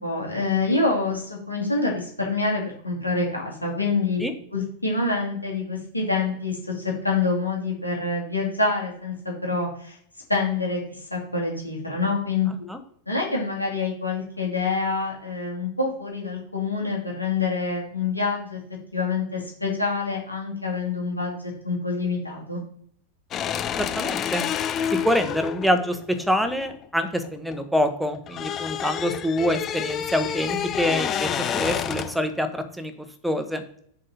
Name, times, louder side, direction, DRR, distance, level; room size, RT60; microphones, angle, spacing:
voice 1, 0.0-4.2 4.5-10.0 10.3-12.5 13.1-18.6 18.9-22.6, left 3 dB, 85° left, -2 dB, 2.1 m, -26 dB
sound 1, 23.3-27.6 27.9-32.3, left 9 dB, 30° left, 0.5 m, -29 dB
voice 2, 23.8-24.5 24.9-32.9 33.2-33.6, equal, ahead, 8 dB, 1.0 m, -25 dB
7.5 x 3.9 x 4.2 m, 0.64 s
figure-of-eight pair, 90°, 0 cm